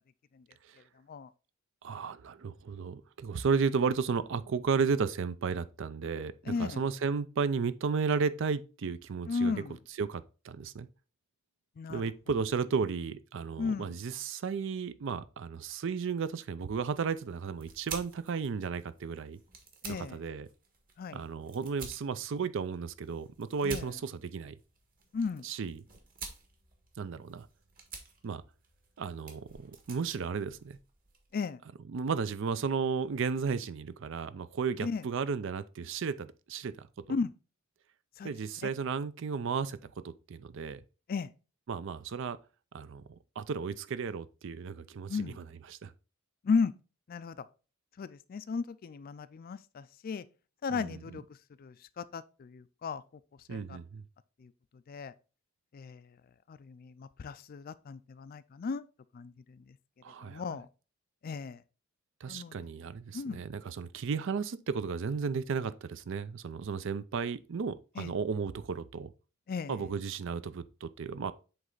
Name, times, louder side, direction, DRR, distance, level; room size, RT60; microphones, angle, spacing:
voice 1, 1.8-9.5 10.0-10.9 11.9-19.4 19.9-20.5 21.1-24.6 25.4-25.8 27.0-27.5 28.2-28.4 29.0-30.8 31.9-37.2 38.2-40.8 41.7-42.4 42.7-45.4 45.7-45.9 50.7-51.2 53.5-54.0 60.0-60.4 62.2-69.1 69.7-71.3, right 5 dB, 65° right, 0.4 m, -34 dB
voice 2, 6.5-6.8 9.3-9.8 11.8-12.1 13.6-14.0 19.8-20.2 21.0-21.2 23.6-23.9 25.1-25.5 31.3-31.6 34.8-35.1 37.1-37.3 38.2-38.3 38.6-38.7 41.1-41.3 45.1-45.4 46.4-46.7 47.1-47.5 48.0-50.3 50.6-53.0 53.5-53.8 54.4-54.5 54.9-55.1 55.7-56.2 56.5-58.9 59.1-59.8 60.2-60.7 61.2-61.6 62.3-62.6 63.1-63.4 68.0-68.1 69.5-69.9, left 5 dB, 45° left, 0.3 m, -35 dB
sound 1, 16.8-31.3, right 4 dB, 45° right, 1.5 m, -50 dB
7.8 x 3.3 x 3.8 m
head